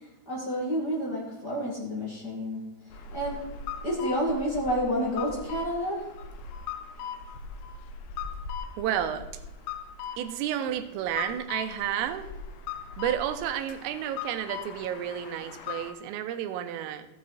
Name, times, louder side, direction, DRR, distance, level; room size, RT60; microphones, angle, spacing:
voice 1, 0.2-2.6 3.1-3.6 3.8-6.0, equal, 50° left, -5 dB, 1.2 m, -29 dB
sound 1, 2.9-15.9, left 6 dB, 75° left, 2.9 m, -40 dB
voice 2, 8.8-9.4 10.2-12.3 13.0-17.1, right 10 dB, 85° right, 8 dB, 3.4 m, -31 dB
14.5 x 8.5 x 4.2 m, 0.94 s
omnidirectional pair, 5.8 m